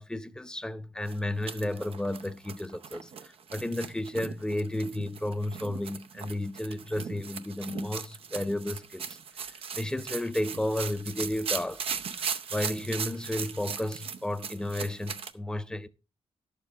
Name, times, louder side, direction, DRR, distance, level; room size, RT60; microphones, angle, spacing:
voice 1, 0.0-9.2 9.8-11.9 12.2-15.9, left 1 dB, 5° left, 0.5 m, -33 dB
sound 1, 1.1-15.3, right 6 dB, 65° right, 0.7 m, -38 dB
11.5 x 7.0 x 4.1 m
wide cardioid pair, 155°, 11 cm